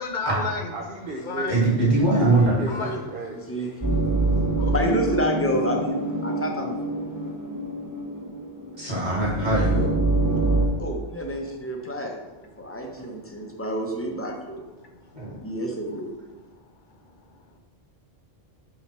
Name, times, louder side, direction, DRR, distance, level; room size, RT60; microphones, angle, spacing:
voice 1, 0.0-0.7 1.2-1.6 2.7-3.0 3.8-4.7 7.1-7.3 10.2-10.8 11.8-11.9 12.8-13.5 14.8-15.5 17.3-17.6, left 4 dB, 55° left, 5 dB, 0.8 m, -36 dB
voice 2, 0.7-1.6 2.2-4.0 13.0-13.1, right 2 dB, 60° right, 0 dB, 0.9 m, -35 dB
voice 3, 1.5-2.5 8.8-9.9 15.1-15.3, right 2 dB, 45° right, -6 dB, 2.5 m, -21 dB
sound 1, 3.8-10.7, right 2 dB, 20° right, 0.7 m, -25 dB
voice 4, 4.7-7.0 10.8-12.2 12.6-14.6 15.4-16.1, equal, 15° left, 1 dB, 0.7 m, -29 dB
5.8 x 5.6 x 3.2 m, 1.1 s
omnidirectional pair, 1.0 m